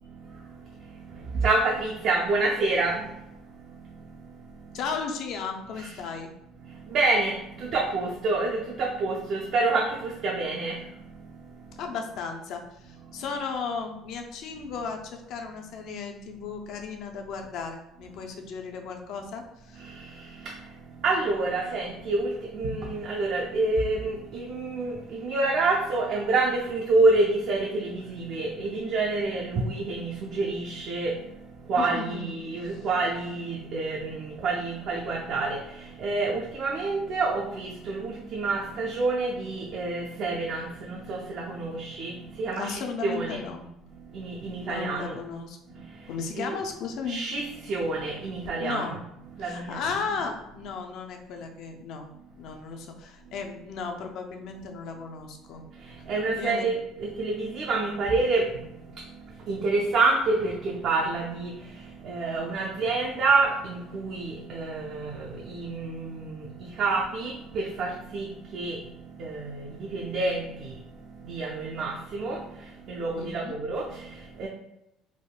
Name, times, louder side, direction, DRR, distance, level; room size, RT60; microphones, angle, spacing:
voice 1, 0.0-4.9 5.7-6.1 6.5-12.1 12.8-13.4 14.7-14.9 15.6-15.9 18.0-18.3 19.2-19.3 19.7-43.4 43.8-45.2 45.7-46.5 46.9-49.9 50.6-50.8 52.4-52.6 53.2-53.5 55.7-74.5, right 3 dB, 50° right, -2 dB, 0.4 m, -29 dB
voice 2, 4.7-6.3 11.8-19.9 31.8-32.9 42.6-43.7 44.6-47.2 48.6-49.0 49.4-55.6 56.3-56.8 73.1-73.6, left 5 dB, 60° left, 4 dB, 0.4 m, -35 dB
3.4 x 2.2 x 2.3 m, 0.87 s
cardioid pair, 145°, 0 cm